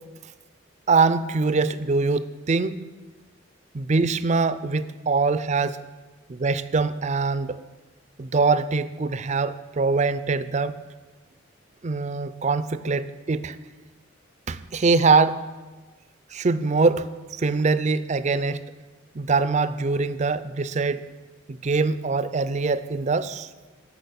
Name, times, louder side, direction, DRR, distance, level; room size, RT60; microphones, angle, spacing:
voice 1, 0.9-2.8 3.7-5.8 6.3-7.6 8.2-10.8 11.8-13.6 14.5-15.4 16.3-17.1 17.3-18.6 19.1-21.0 21.5-23.5, right 4 dB, 35° right, 14 dB, 0.4 m, -23 dB
11.0 x 6.0 x 8.0 m, 1.3 s
head